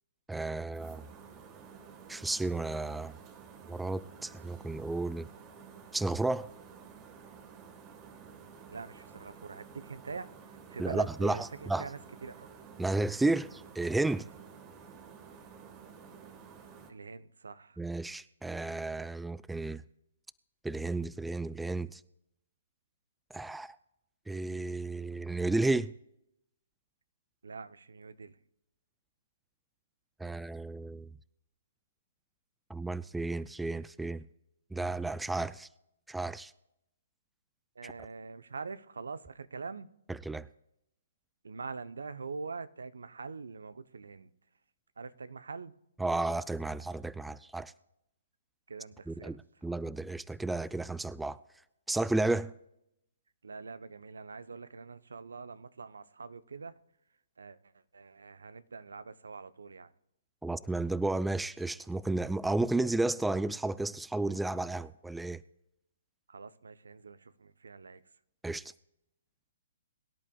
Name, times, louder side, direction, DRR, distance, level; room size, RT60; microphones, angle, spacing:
voice 1, 0.3-1.0 2.1-3.1 3.7-5.3 5.9-6.5 10.8-11.9 12.8-14.3 17.8-19.8 20.6-22.0 23.3-23.8 24.3-25.9 30.2-31.1 32.7-34.2 34.7-35.7 36.1-36.5 37.8-37.9 40.1-40.5 46.0-47.7 49.1-51.4 51.9-52.5 60.4-65.4 68.4-68.7, right 2 dB, 5° right, 0.3 m, -32 dB
sound 1, 0.7-16.9, right 6 dB, 25° right, 1.5 m, -52 dB
voice 2, 8.7-12.5 16.9-17.8 27.4-28.4 37.8-39.9 41.4-44.3 45.0-45.7 48.7-49.4 53.4-56.8 57.4-59.9 66.3-68.0, right 4 dB, 75° right, 0.7 m, -44 dB
22.5 x 11.0 x 2.3 m
hypercardioid pair, 130°, 0 cm